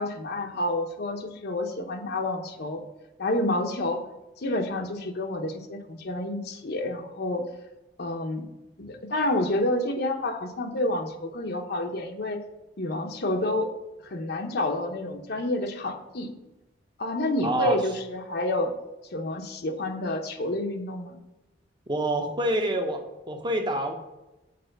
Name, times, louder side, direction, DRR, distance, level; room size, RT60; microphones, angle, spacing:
voice 1, 0.0-2.8 3.2-4.0 4.4-7.5 8.0-8.5 8.8-12.4 12.8-13.7 14.0-16.3 17.0-18.7 19.1-21.2, left 1 dB, 60° left, 4 dB, 0.9 m, -29 dB
voice 2, 17.4-17.8 21.9-23.9, right 1 dB, 25° right, 4 dB, 1.0 m, -27 dB
6.8 x 4.9 x 6.6 m, 1.0 s
head